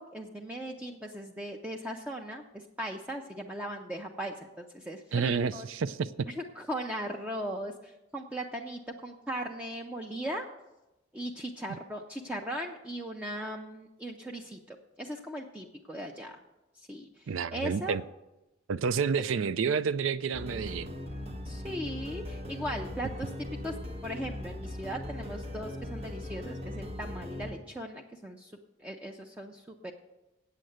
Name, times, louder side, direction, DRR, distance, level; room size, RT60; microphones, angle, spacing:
voice 1, 0.0-5.6 6.3-10.4 11.1-16.4 16.8-18.0 21.4-23.3 23.6-23.7 24.0-28.5 28.8-29.9, equal, 5° right, 0.5 m, -38 dB
voice 2, 5.1-6.1 17.3-18.0 18.7-20.9, right 6 dB, 70° right, 0.4 m, -29 dB
sound 1, 20.3-27.5, left 1 dB, 30° right, 1.0 m, -39 dB
8.4 x 7.7 x 7.9 m
head